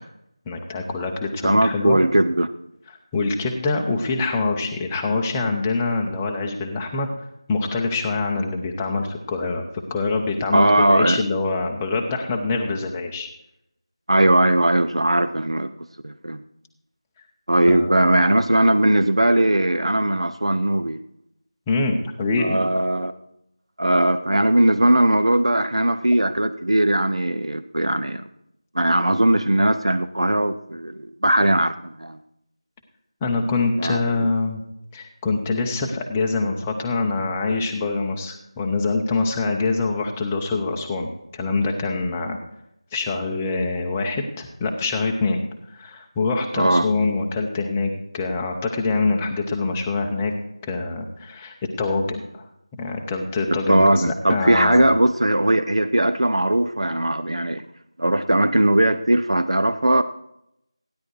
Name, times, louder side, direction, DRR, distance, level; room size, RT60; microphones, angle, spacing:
voice 1, 0.5-2.0 2.9-7.1 7.5-9.6 9.9-13.3 17.7-18.2 21.7-22.6 33.2-34.6 34.9-42.4 42.9-45.4 45.7-50.3 50.6-52.4 52.7-54.9, left 3 dB, 5° left, 1 dB, 0.7 m, -25 dB
voice 2, 1.4-2.5 10.5-11.2 14.1-15.7 16.0-16.4 17.5-21.0 22.4-23.1 23.8-28.2 28.7-32.2 33.8-34.3 46.5-46.9 53.7-57.6 58.0-60.0, right 1 dB, 70° right, 9 dB, 0.7 m, -19 dB
15.5 x 10.5 x 4.7 m, 0.80 s
figure-of-eight pair, 170°, 3 cm